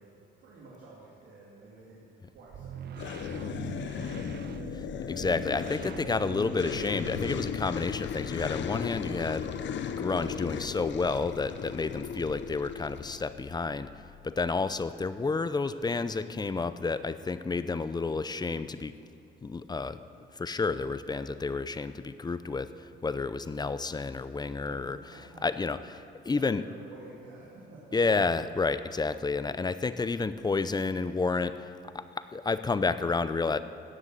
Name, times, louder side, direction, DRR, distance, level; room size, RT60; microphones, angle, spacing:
voice 1, 0.0-5.5 5.7-6.0 24.3-24.8 25.1-25.4 26.3-28.0, right 2 dB, 85° right, -7 dB, 2.5 m, -52 dB
sound 1, 2.4-7.9, right 10 dB, 55° right, 0.4 m, -43 dB
sound 2, 3.0-13.3, left 8 dB, 65° left, 0.7 m, -36 dB
sound 3, 3.7-14.3, left 4 dB, 45° left, 1.5 m, -53 dB
voice 2, 5.1-9.5 10.0-18.9 19.4-20.0 20.3-25.0 25.4-26.0 26.2-26.6 27.9-33.6, left 4 dB, 20° left, 13 dB, 0.5 m, -30 dB
15.0 x 6.4 x 9.0 m, 2.6 s
cardioid pair, 90°, 20 cm